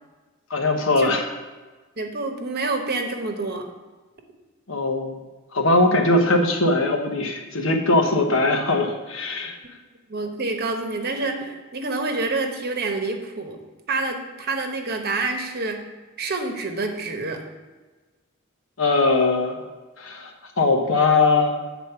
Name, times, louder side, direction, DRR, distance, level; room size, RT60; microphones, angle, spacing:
voice 1, 0.5-1.2 4.7-5.2 5.5-9.6 18.8-19.6 20.0-20.3 20.6-21.6, left 2 dB, 65° left, 3 dB, 1.1 m, -20 dB
voice 2, 2.0-3.6 10.1-13.6 13.9-15.8 16.2-17.4, right 3 dB, 50° right, 4 dB, 1.0 m, -27 dB
8.2 x 4.1 x 6.9 m, 1.3 s
head